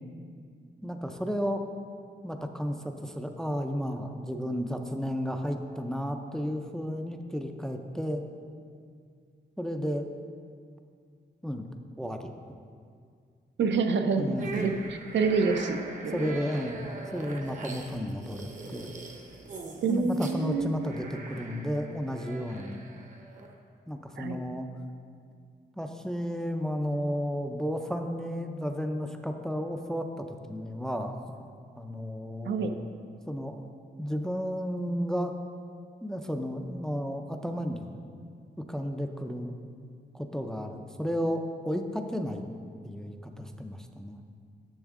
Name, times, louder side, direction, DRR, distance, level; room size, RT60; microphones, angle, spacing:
voice 1, 0.8-1.6 2.2-8.2 9.6-10.1 11.4-11.7 12.0-12.3 14.2-14.6 16.1-16.8 17.1-18.9 19.9-22.8 23.9-24.7 25.8-31.1 31.8-32.9 33.3-33.6 34.0-35.3 36.0-38.0 38.7-39.6 40.1-42.4 42.8-44.2, equal, 5° left, 5 dB, 0.3 m, -33 dB
voice 2, 13.6-16.4 19.8-20.9 24.2-24.4 32.4-32.7, right 4 dB, 75° right, 8 dB, 0.5 m, -28 dB
sound 1, 14.4-23.5, right 3 dB, 40° right, 0.8 m, -42 dB
10.5 x 7.2 x 3.6 m, 2.2 s
wide cardioid pair, 180°, 19 cm